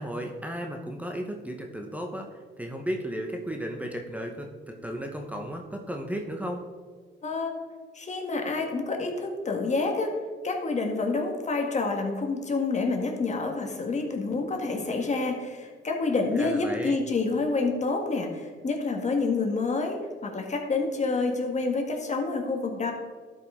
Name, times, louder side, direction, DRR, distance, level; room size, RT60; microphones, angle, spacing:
voice 1, 0.0-6.6 16.4-17.0, equal, 5° right, 2 dB, 0.9 m, -34 dB
voice 2, 7.2-7.6 7.9-10.2 10.4-22.9, left 3 dB, 35° left, 3 dB, 1.5 m, -28 dB
12.0 x 5.4 x 3.7 m, 1.5 s
cardioid pair, 90°, 20 cm